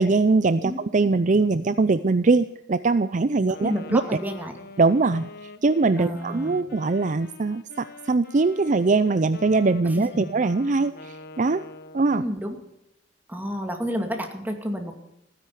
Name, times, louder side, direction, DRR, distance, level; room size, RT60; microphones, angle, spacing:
voice 1, 0.0-4.0 4.8-11.6 11.9-12.2, right 3 dB, 40° right, 13 dB, 0.5 m, -22 dB
Wind instrument woodwind instrument, 3.4-12.3, left 2 dB, 55° left, 1.4 m, -44 dB
voice 2, 3.4-4.5 6.0-6.6 10.1-10.3 12.1-12.6 13.3-14.9, equal, 10° right, 4 dB, 2.3 m, -30 dB
16.0 x 10.5 x 8.4 m, 0.84 s
head